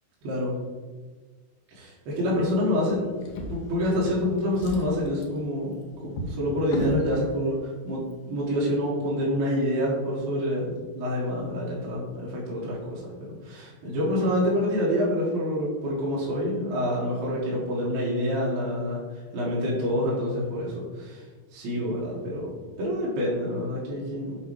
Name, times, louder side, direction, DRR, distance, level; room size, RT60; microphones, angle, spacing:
voice 1, 0.2-0.6 1.7-3.1 3.5-8.0 8.3-21.2 21.5-24.4, equal, 75° right, -6 dB, 3.3 m, -27 dB
Drawer open or close, 3.2-4.2 4.5-7.1 8.0-8.1 8.5-8.6, left 1 dB, 75° left, 1.8 m, -34 dB
7.9 x 3.0 x 5.0 m, 1.4 s
omnidirectional pair, 4.6 m